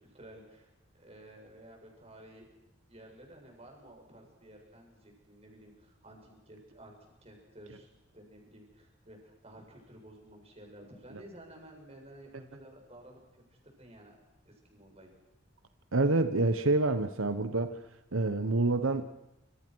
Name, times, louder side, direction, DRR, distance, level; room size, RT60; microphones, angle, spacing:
voice 1, 0.0-2.5 2.9-14.2 14.4-15.1, right 1 dB, 30° right, 1 dB, 7.2 m, -53 dB
voice 2, 15.9-17.8 18.1-19.1, right 2 dB, 90° right, 10 dB, 1.2 m, -27 dB
27.0 x 26.5 x 6.4 m, 0.90 s
head